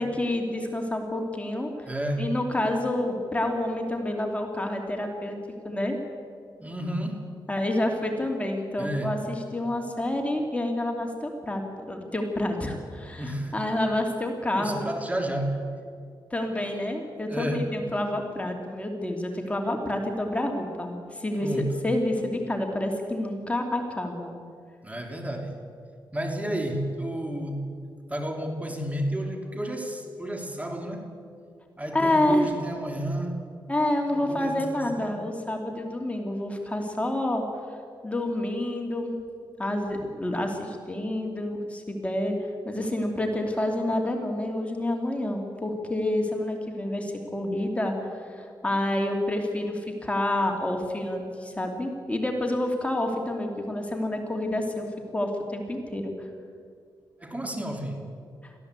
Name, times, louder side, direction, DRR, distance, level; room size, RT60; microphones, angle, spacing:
voice 1, 0.0-1.7 2.2-5.4 5.6-6.0 7.5-14.9 16.3-21.5 21.8-24.3 31.9-32.5 33.7-37.4 38.0-39.2 39.6-42.4 42.6-47.9 48.3-54.9 55.1-56.1, left 1 dB, 15° left, 2 dB, 2.9 m, -28 dB
voice 2, 1.9-2.3 6.6-7.3 8.8-9.2 13.2-13.5 14.6-15.6 17.3-17.7 21.4-21.8 24.8-25.6 26.1-27.7 28.1-31.1 31.8-33.4 34.1-35.2 57.2-58.1, right 1 dB, 15° right, 3 dB, 3.2 m, -31 dB
22.5 x 15.5 x 8.3 m, 2.2 s
cardioid pair, 85°, 8 cm